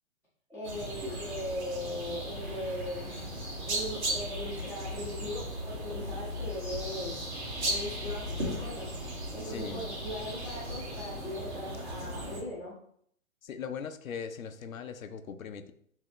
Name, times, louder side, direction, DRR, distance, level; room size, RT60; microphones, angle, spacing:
voice 1, 0.5-3.1 3.7-7.3 7.6-8.9 9.3-12.7, left 1 dB, 5° right, -11 dB, 1.7 m, -39 dB
sound 1, 0.6-12.4, equal, 55° right, 2.4 m, -36 dB
voice 2, 9.4-9.9 13.4-15.7, left 6 dB, 75° left, 9 dB, 0.8 m, -39 dB
8.5 x 3.6 x 3.2 m, 0.65 s
hypercardioid pair, 155°, 41 cm